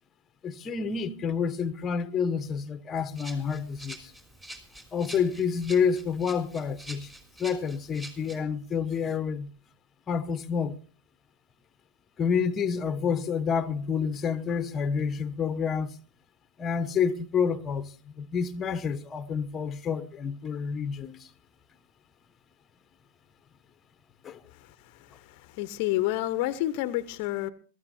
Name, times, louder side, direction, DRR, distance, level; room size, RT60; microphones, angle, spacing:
voice 1, 0.4-4.1 4.9-7.1 7.4-9.5 10.1-10.8 12.2-15.9 16.6-21.3 24.2-24.4, left 6 dB, 25° left, 1.0 m, -29 dB
Rattle (instrument), 3.1-8.4, right 1 dB, 15° right, 3.3 m, -46 dB
voice 2, 24.5-27.5, left 15 dB, 50° left, 0.8 m, -30 dB
23.0 x 13.5 x 2.7 m
hypercardioid pair, 100°, 0 cm